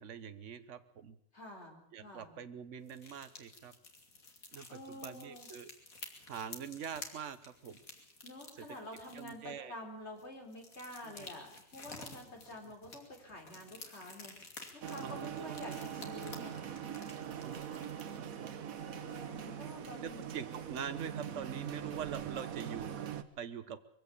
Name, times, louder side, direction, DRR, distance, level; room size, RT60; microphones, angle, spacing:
voice 1, 0.0-1.2 1.9-3.7 4.5-5.7 6.3-7.8 9.1-9.7 11.0-11.3 15.0-15.6 17.4-18.5 20.0-22.9 23.4-23.8, right 7 dB, 60° right, 11 dB, 1.4 m, -44 dB
voice 2, 1.3-2.4 4.7-5.5 8.2-14.3 14.7-16.6 18.8-20.3, left 1 dB, 50° left, 2 dB, 4.7 m, -49 dB
sound 1, 2.9-9.5 10.1-18.2, left 3 dB, 85° left, 3.3 m, -52 dB
sound 2, 14.8-23.2, right 9 dB, 80° right, 1.5 m, -42 dB
22.5 x 16.0 x 8.4 m, 0.67 s
omnidirectional pair, 1.4 m